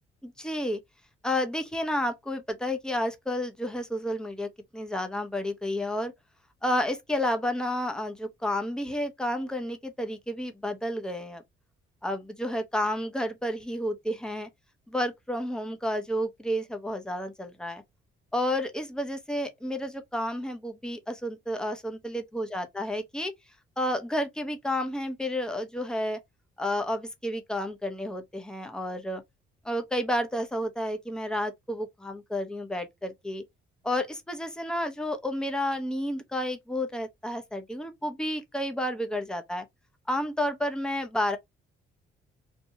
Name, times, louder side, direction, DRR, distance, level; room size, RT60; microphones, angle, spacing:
voice 1, 0.2-0.8 1.2-6.1 6.6-11.4 12.0-14.5 14.9-17.8 18.3-23.3 23.8-26.2 26.6-29.2 29.6-33.4 33.8-39.7 40.1-41.4, left 1 dB, 5° left, 0.6 m, -31 dB
2.8 x 2.1 x 2.7 m
cardioid pair, 90°, 20 cm